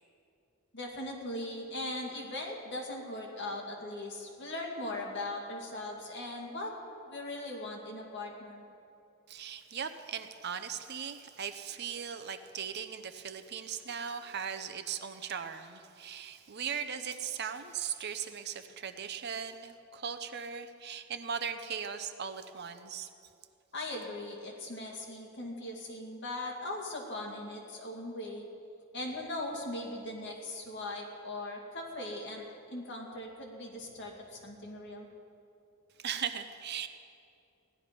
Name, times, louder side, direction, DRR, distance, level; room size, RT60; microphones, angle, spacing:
voice 1, 0.7-6.7 7.0-8.6 23.7-28.5 28.9-32.4 32.7-35.1, left 1 dB, 55° left, -1 dB, 2.3 m, -39 dB
voice 2, 9.3-23.1 36.0-36.9, right 7 dB, 50° right, 9 dB, 0.6 m, -38 dB
16.0 x 11.5 x 5.2 m, 2.6 s
head